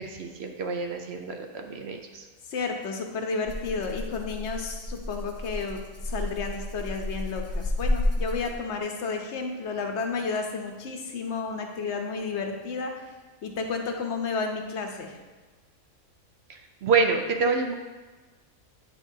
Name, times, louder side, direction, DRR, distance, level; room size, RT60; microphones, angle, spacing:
voice 1, 0.0-2.3 16.5-17.7, right 4 dB, 65° right, 5 dB, 0.7 m, -27 dB
voice 2, 2.5-5.8 6.0-12.9 13.4-15.1, left 4 dB, 60° left, 3 dB, 1.0 m, -32 dB
Rattle (instrument), 3.4-8.8, left 1 dB, 20° left, 0.5 m, -31 dB
8.7 x 5.9 x 2.7 m, 1.3 s
omnidirectional pair, 1.4 m